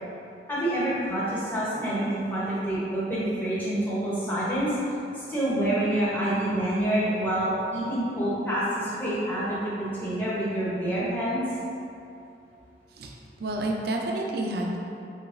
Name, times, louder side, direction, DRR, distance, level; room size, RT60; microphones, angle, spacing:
voice 1, 0.5-4.7 5.1-11.4, right 1 dB, 10° left, -9 dB, 0.8 m, -27 dB
voice 2, 13.0-14.8, right 1 dB, 55° right, 0 dB, 0.4 m, -30 dB
3.9 x 3.2 x 2.5 m, 2.7 s
head